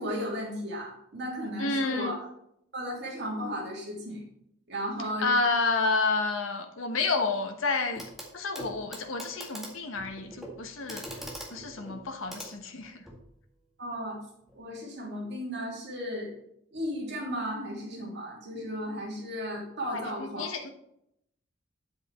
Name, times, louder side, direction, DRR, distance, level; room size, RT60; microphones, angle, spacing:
voice 1, 0.0-2.1 2.7-4.2 4.7-5.3 13.8-14.2 14.5-16.3 16.7-20.5, equal, 55° right, -2 dB, 3.0 m, -35 dB
voice 2, 1.6-2.2 5.2-8.0 8.3-11.1 11.5-13.0 19.9-20.7, left 3 dB, 80° left, 5 dB, 1.1 m, -30 dB
Clock, 8.0-8.3 8.5-13.2 14.5-14.6, right 1 dB, ahead, 2.0 m, -43 dB
9.4 x 7.9 x 3.5 m, 0.75 s
head